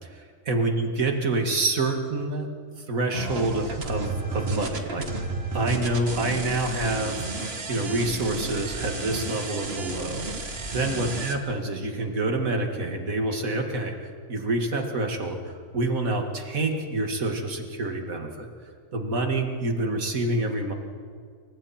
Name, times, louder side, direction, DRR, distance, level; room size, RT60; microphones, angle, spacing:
voice 1, 0.0-2.5 2.8-5.2 5.5-7.3 7.7-10.3 10.7-13.9 14.3-18.5 18.9-20.7, right 2 dB, 85° right, 3 dB, 2.6 m, -27 dB
sound 1, 3.1-11.4, right 3 dB, 50° right, 1.8 m, -32 dB
27.5 x 25.0 x 4.4 m, 2.2 s
omnidirectional pair, 1.4 m